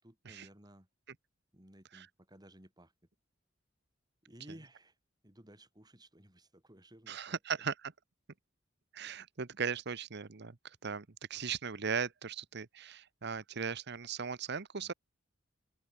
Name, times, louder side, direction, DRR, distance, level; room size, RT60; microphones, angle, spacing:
voice 1, 0.0-0.9 1.5-2.9 4.2-5.0 5.2-7.7 14.5-14.9, right 1 dB, 20° right, 5.7 m, -57 dB
voice 2, 7.1-7.7 8.9-10.6 10.8-14.9, right 6 dB, 60° right, 1.0 m, -38 dB
open air
head